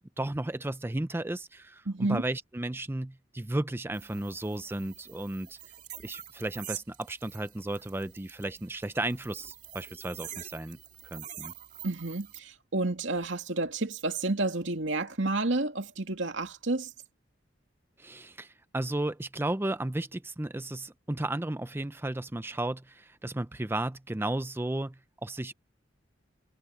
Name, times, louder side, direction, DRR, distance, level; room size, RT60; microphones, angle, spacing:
voice 1, 0.0-5.6 6.0-10.8 11.0-11.5 18.0-25.5, right 1 dB, 10° right, 0.5 m, -34 dB
voice 2, 1.9-2.2 11.8-16.9, right 2 dB, 85° right, 2.4 m, -30 dB
sound 1, 3.9-12.4, right 10 dB, 40° right, 2.8 m, -46 dB
head